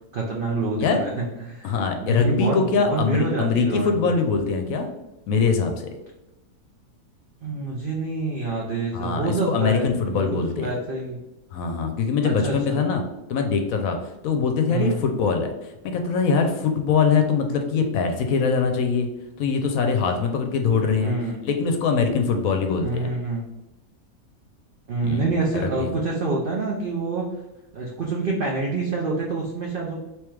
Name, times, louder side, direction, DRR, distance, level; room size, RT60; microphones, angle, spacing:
voice 1, 0.1-1.7 2.0-4.1 7.4-11.2 12.2-12.8 14.7-15.1 21.0-21.4 22.8-23.4 24.9-27.4 27.7-30.0, right 3 dB, 85° right, -1 dB, 0.4 m, -27 dB
voice 2, 1.6-4.9 5.3-5.7 8.9-10.7 11.5-13.0 13.3-14.0 14.2-19.1 19.4-21.1 21.4-23.1 25.0-26.0, left 5 dB, 70° left, 5 dB, 0.9 m, -23 dB
3.4 x 3.0 x 3.1 m, 0.96 s
omnidirectional pair, 1.7 m